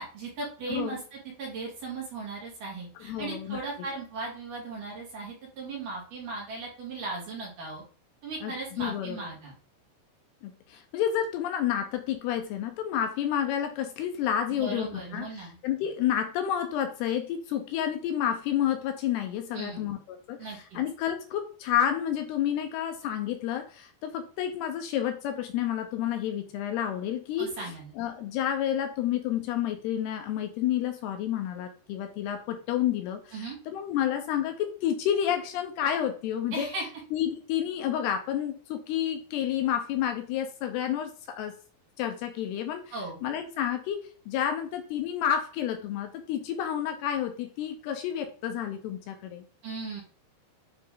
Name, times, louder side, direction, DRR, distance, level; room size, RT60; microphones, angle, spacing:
voice 1, 0.0-7.8 8.2-9.6 14.5-15.6 19.5-19.9 20.4-20.8 27.4-27.9 33.3-33.6 36.5-36.9 42.9-43.2 49.6-50.0, right 3 dB, 55° right, -2 dB, 3.0 m, -37 dB
voice 2, 3.1-3.6 8.4-9.2 10.4-20.0 20.3-27.5 28.0-36.7 37.1-41.5 42.0-42.8 43.2-44.0 44.3-49.4, left 10 dB, 80° left, 5 dB, 2.6 m, -30 dB
9.2 x 3.2 x 3.5 m, 0.40 s
omnidirectional pair, 5.0 m